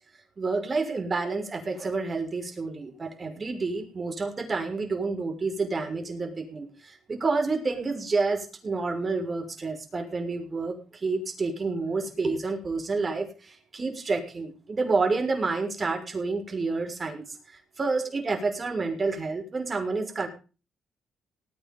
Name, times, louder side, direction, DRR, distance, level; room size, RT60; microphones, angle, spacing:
voice 1, 0.4-17.4 17.8-20.3, right 3 dB, 35° right, 3 dB, 6.1 m, -29 dB
19.0 x 9.7 x 5.6 m, 0.35 s
cardioid pair, 90°, 0 cm